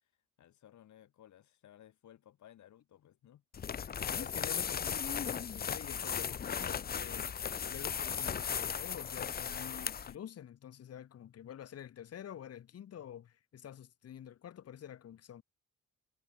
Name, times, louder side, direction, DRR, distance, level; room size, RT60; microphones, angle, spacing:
voice 1, 0.4-3.4, left 11 dB, 70° left, 4.8 m, -59 dB
sound 1, 3.5-10.1, left 7 dB, 30° left, 0.6 m, -36 dB
voice 2, 4.0-7.4 7.7-15.4, left 10 dB, 55° left, 1.4 m, -48 dB
cardioid pair, 90°, 30 cm